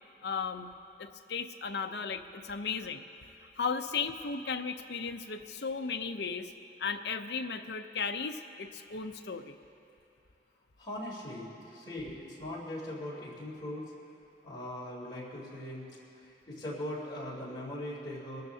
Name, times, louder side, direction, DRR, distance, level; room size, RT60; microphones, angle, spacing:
voice 1, 0.2-0.7 1.0-3.0 3.6-6.5 6.8-9.6, left 5 dB, 65° left, 7 dB, 0.6 m, -35 dB
voice 2, 10.8-13.9 14.4-15.9 16.2-18.4, left 1 dB, 25° left, -7 dB, 3.5 m, -40 dB
24.5 x 13.5 x 2.8 m, 3.0 s
head